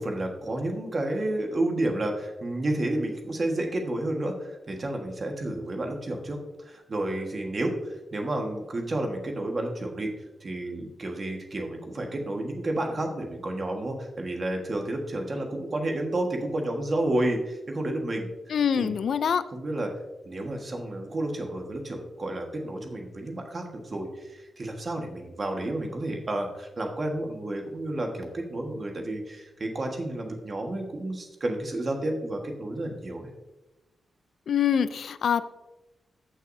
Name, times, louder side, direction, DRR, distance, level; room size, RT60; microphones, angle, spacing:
voice 1, 0.0-10.1 10.4-18.3 18.7-18.9 19.5-19.9 20.2-33.3, right 1 dB, 35° right, 2 dB, 1.5 m, -31 dB
voice 2, 18.5-19.4 34.5-35.4, left 8 dB, 70° left, 13 dB, 0.4 m, -24 dB
14.5 x 6.4 x 2.7 m, 1.0 s
wide cardioid pair, 120°, 0 cm